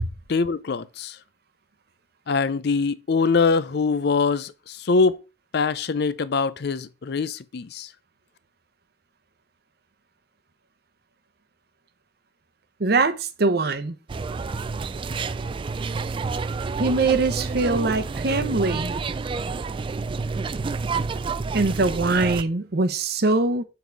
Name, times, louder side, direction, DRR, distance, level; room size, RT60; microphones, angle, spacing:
voice 1, 0.3-1.2 2.3-5.2 5.5-7.9, left 4 dB, 60° left, 0.5 m, -23 dB
voice 2, 12.8-14.0 16.8-19.0 21.5-23.6, right 3 dB, 55° right, 0.8 m, -22 dB
sound 1, 14.1-22.4, right 4 dB, 25° right, 0.3 m, -29 dB
6.9 x 4.0 x 4.6 m
head